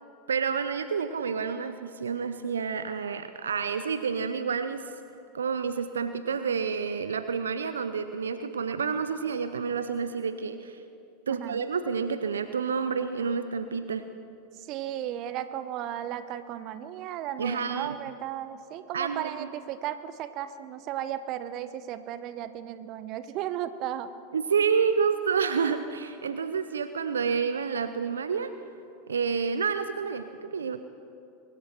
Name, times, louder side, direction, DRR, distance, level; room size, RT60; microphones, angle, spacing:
voice 1, 0.3-4.8 5.3-10.8 11.3-14.0 17.4-18.0 18.9-19.5 24.3-28.5 29.1-30.9, right 6 dB, 80° right, 10 dB, 0.5 m, -29 dB
voice 2, 14.6-24.1, right 11 dB, 45° right, 12 dB, 0.8 m, -35 dB
23.0 x 12.0 x 4.5 m, 2.6 s
figure-of-eight pair, 85°, 0 cm